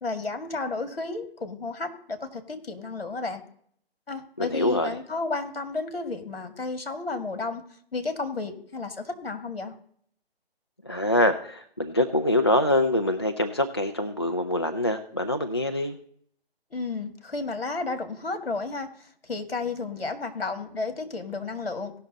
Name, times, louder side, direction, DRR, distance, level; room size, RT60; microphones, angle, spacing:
voice 1, 0.0-3.4 4.1-7.6 7.9-9.7 16.7-21.9, left 3 dB, 65° left, 6 dB, 2.1 m, -32 dB
voice 2, 4.4-5.0 10.8-16.0, left 1 dB, 25° left, 7 dB, 0.3 m, -24 dB
17.5 x 6.2 x 4.0 m, 0.62 s
figure-of-eight pair, 145°, 31 cm